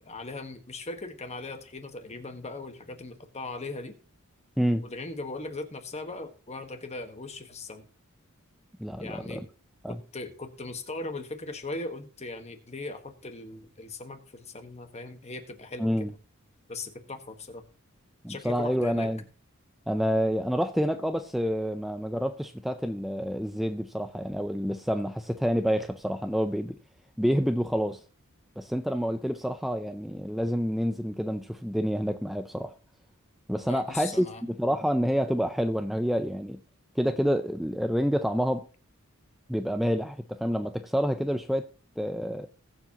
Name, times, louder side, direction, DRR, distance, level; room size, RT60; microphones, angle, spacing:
voice 1, 0.0-3.9 4.8-7.9 9.0-9.5 9.9-16.1 16.7-17.6 18.3-19.1 33.7-34.4, left 2 dB, 30° left, 7 dB, 1.4 m, -39 dB
voice 2, 8.8-9.5 9.8-10.0 15.8-16.1 18.2-19.2 19.9-26.8 27.2-28.0 28.6-32.7 33.5-36.6 37.0-38.6 39.5-41.7 42.0-42.5, equal, ahead, 7 dB, 0.5 m, -28 dB
20.5 x 7.3 x 2.9 m, 0.36 s
head